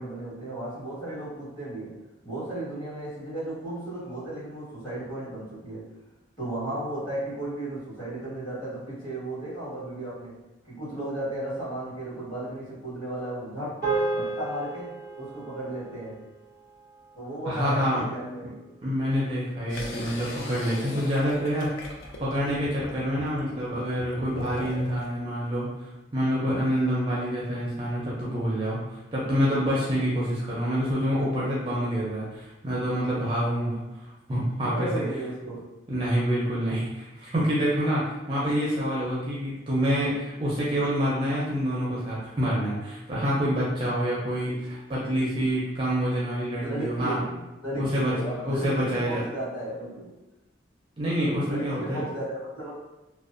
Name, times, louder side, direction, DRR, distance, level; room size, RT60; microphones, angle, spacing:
voice 1, 0.0-1.9 2.2-5.8 6.4-10.3 10.6-13.7 14.1-16.2 17.1-18.5 34.6-35.7 46.5-50.1 51.4-52.7, right 1 dB, 25° left, -11 dB, 1.4 m, -34 dB
sound 1, 13.8-18.3, right 3 dB, 45° left, 1.2 m, -34 dB
voice 2, 17.5-18.0 18.8-21.7 22.2-33.8 34.3-35.0 35.9-47.2 47.7-48.1 48.4-49.2 51.0-52.0, equal, 25° right, -7 dB, 0.4 m, -27 dB
sound 2, 19.7-25.1, left 1 dB, 90° left, 0.4 m, -40 dB
2.5 x 2.1 x 2.4 m, 1.0 s
head